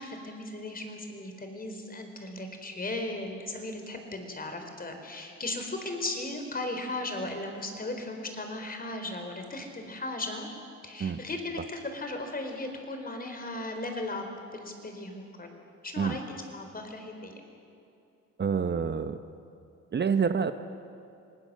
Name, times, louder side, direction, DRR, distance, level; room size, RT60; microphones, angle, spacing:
voice 1, 0.0-10.5 10.8-14.2 14.5-15.5 15.8-17.4, left 2 dB, 30° left, 5 dB, 4.3 m, -36 dB
voice 2, 18.4-19.2 19.9-20.5, right 6 dB, 35° right, 10 dB, 0.9 m, -27 dB
26.5 x 19.0 x 7.6 m, 2.6 s
cardioid pair, 90°, 30 cm